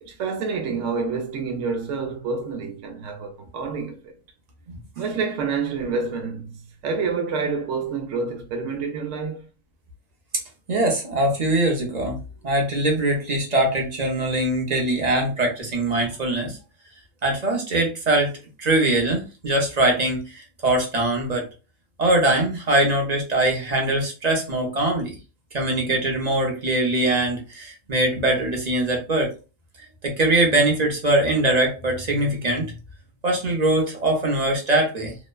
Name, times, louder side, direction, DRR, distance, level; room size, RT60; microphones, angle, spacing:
voice 1, 0.0-4.1 5.0-9.5, right 5 dB, 70° right, 1.0 m, -28 dB
voice 2, 10.7-12.2 12.4-16.6 17.2-18.3 18.6-21.4 22.0-25.1 25.5-29.3 29.8-32.7 33.2-35.2, right 1 dB, 45° right, 0.6 m, -22 dB
2.9 x 2.1 x 2.3 m
omnidirectional pair, 1.3 m